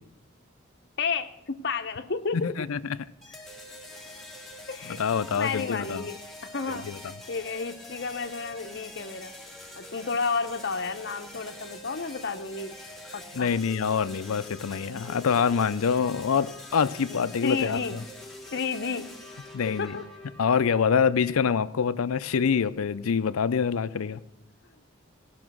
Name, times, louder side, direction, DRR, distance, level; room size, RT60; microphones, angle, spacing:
voice 1, 1.0-2.5 4.7-5.0 5.4-6.2 6.5-9.3 9.8-12.8 13.1-13.5 17.1-18.0 18.5-19.1 19.8-20.1, left 4 dB, 50° left, 8 dB, 0.7 m, -31 dB
voice 2, 2.3-2.8 4.9-6.1 6.7-7.0 13.3-18.0 19.5-19.9 20.4-24.2, left 6 dB, 85° left, 15 dB, 0.5 m, -25 dB
sound 1, 3.2-21.2, left 1 dB, ahead, 1.5 m, -45 dB
17.5 x 6.1 x 6.1 m, 0.85 s
head